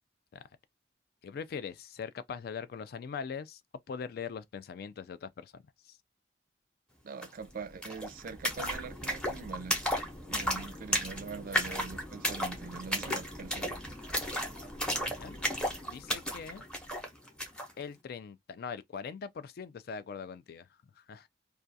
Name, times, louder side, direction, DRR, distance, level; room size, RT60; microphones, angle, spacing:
voice 1, 1.2-3.6 3.9-5.6 5.9-6.0 10.3-10.7 14.8-16.7 17.8-20.7 21.0-21.3, left 6 dB, 60° left, 0.3 m, -42 dB
voice 2, 7.0-9.9 10.3-13.8, right 5 dB, 50° right, 0.4 m, -43 dB
sound 1, 7.2-7.3 7.5-17.7, equal, 5° left, 0.7 m, -34 dB
2.3 x 2.2 x 2.6 m
head